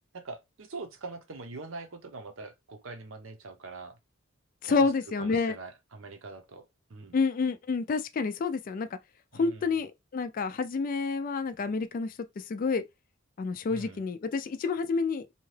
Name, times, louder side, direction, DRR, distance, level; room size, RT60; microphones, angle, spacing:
voice 1, 0.1-4.0 4.7-4.9 5.2-6.6 6.9-7.2 9.3-9.8 13.7-14.0, right 3 dB, 70° right, 0.7 m, -43 dB
voice 2, 4.6-5.6 7.1-9.0 9.3-12.8 13.4-15.2, left 4 dB, 40° left, 0.3 m, -29 dB
2.8 x 2.3 x 3.2 m
head